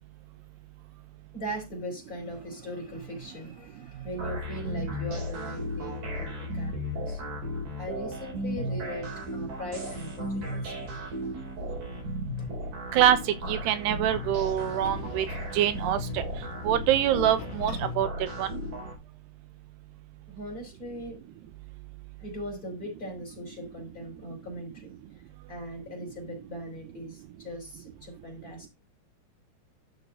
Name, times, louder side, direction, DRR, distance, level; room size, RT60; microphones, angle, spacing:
voice 1, 1.3-7.2 7.8-10.8 20.3-21.2 22.2-24.9 25.5-28.7, equal, 20° left, 4.7 m, -39 dB
sound 1, 4.2-19.0, equal, 55° right, 5.7 m, -35 dB
sound 2, 12.8-18.0, left 5 dB, 60° left, 3.7 m, -45 dB
voice 2, 13.5-15.3 15.5-16.2 16.6-18.1 18.4-18.6, right 11 dB, 85° right, 3.0 m, -24 dB
13.0 x 6.3 x 3.5 m
omnidirectional pair, 4.7 m